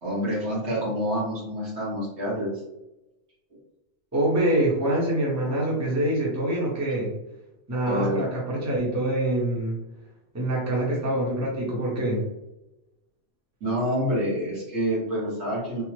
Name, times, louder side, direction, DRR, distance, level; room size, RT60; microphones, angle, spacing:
voice 1, 0.0-2.5 7.9-8.2 13.6-15.8, equal, 70° right, -5 dB, 1.5 m, -27 dB
voice 2, 4.1-7.1 7.7-9.8 10.3-12.2, right 1 dB, 15° right, -5 dB, 0.8 m, -25 dB
3.4 x 2.0 x 3.1 m, 0.93 s
omnidirectional pair, 1.2 m